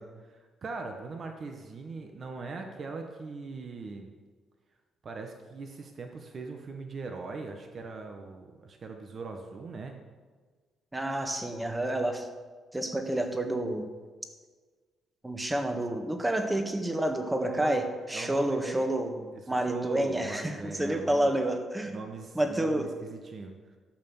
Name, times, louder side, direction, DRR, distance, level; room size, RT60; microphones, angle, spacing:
voice 1, 0.0-4.1 5.0-10.0 17.5-17.8 18.1-18.9 19.3-21.3 21.8-23.5, right 4 dB, 45° right, 3 dB, 1.4 m, -40 dB
voice 2, 10.9-12.3 12.7-13.9 15.2-19.1 19.5-22.0 22.3-22.9, right 1 dB, 10° right, 5 dB, 1.5 m, -29 dB
13.5 x 5.8 x 7.2 m, 1.5 s
cardioid pair, 90°, 0 cm